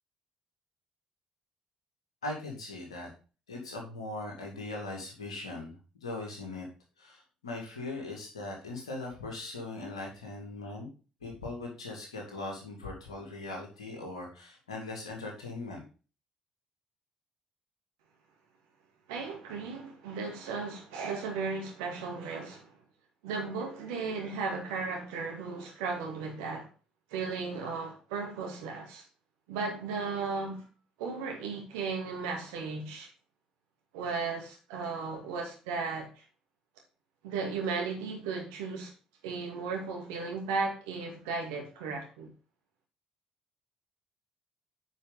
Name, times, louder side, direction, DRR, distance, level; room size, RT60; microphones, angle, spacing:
voice 1, 2.2-3.1 3.5-5.7 6.0-6.7 7.0-10.9 11.2-15.8, left 2 dB, 80° left, 2.1 m, -40 dB
voice 2, 19.1-22.7 23.2-26.7 27.1-29.0 29.5-30.6 31.0-33.1 33.9-36.2 37.2-38.9 39.2-42.3, right 4 dB, 70° right, 2.2 m, -35 dB
9.3 x 5.0 x 4.0 m
figure-of-eight pair, 45°, 3 cm